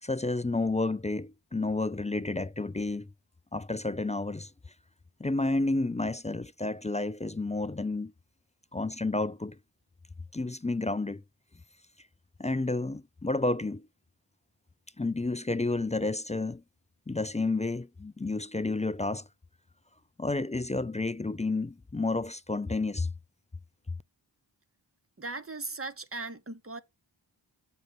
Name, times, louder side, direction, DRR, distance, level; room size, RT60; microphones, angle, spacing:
voice 1, 0.0-3.1 3.5-4.5 5.2-8.1 8.7-9.6 10.3-11.2 12.4-13.9 15.0-16.6 17.1-19.3 20.2-23.1, left 2 dB, 15° left, 0.4 m, -30 dB
voice 2, 25.2-26.8, right 3 dB, 30° right, 1.0 m, -38 dB
7.9 x 4.4 x 4.3 m
wide cardioid pair, 45°, 46 cm